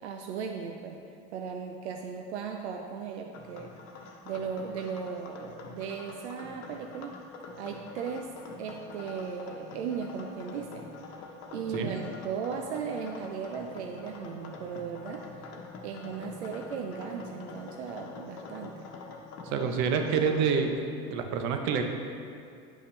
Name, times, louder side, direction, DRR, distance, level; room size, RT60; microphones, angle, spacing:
voice 1, 0.0-1.0 1.3-3.7 4.2-7.1 7.6-8.3 8.6-10.9 11.5-15.2 15.8-18.8, right 6 dB, 85° right, 3 dB, 0.6 m, -37 dB
sound 1, 3.3-20.7, left 3 dB, 50° left, 1.1 m, -45 dB
voice 2, 19.5-20.7 21.1-21.8, right 6 dB, 60° right, 5 dB, 1.0 m, -27 dB
10.0 x 5.7 x 3.3 m, 2.4 s
hypercardioid pair, 95°, 33 cm